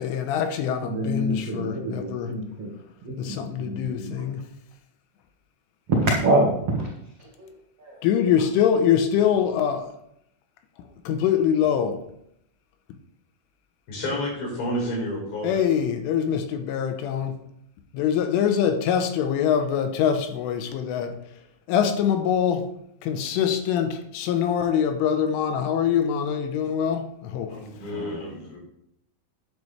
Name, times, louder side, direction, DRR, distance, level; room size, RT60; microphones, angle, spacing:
voice 1, 0.0-2.4 3.2-4.4 8.0-9.9 11.1-12.0 15.4-17.4 17.9-21.2 21.7-22.7 23.0-27.6, left 8 dB, 80° left, 3.3 m, -24 dB
voice 2, 0.8-2.7 3.0-4.2 5.9-6.9 7.2-7.5 7.8-8.0 27.8-28.4, right 1 dB, 80° right, 1.3 m, -26 dB
voice 3, 13.9-15.6 27.5-28.6, left 1 dB, 60° left, 6.9 m, -30 dB
10.5 x 10.5 x 3.4 m
omnidirectional pair, 5.9 m